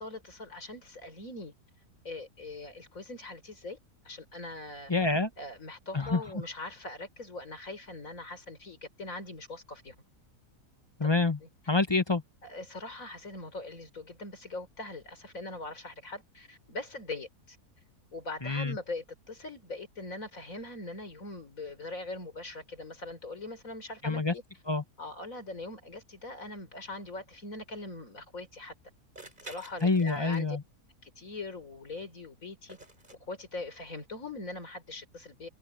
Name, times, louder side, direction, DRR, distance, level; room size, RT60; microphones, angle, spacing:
voice 1, 0.0-1.5 2.0-3.8 4.0-4.9 5.4-9.9 12.4-17.6 18.1-24.4 25.0-28.7 29.4-30.6 31.0-32.8 33.3-35.5, left 2 dB, 55° left, 4.8 m, -41 dB
voice 2, 4.9-5.3 5.9-6.2 11.0-11.4 11.7-12.2 18.4-18.8 24.0-24.3 24.7-24.8 29.8-30.6, left 3 dB, 20° left, 0.8 m, -27 dB
sound 1, 28.0-28.1 29.2-30.7 32.7-33.2, right 2 dB, 30° right, 4.1 m, -50 dB
omnidirectional pair, 1.7 m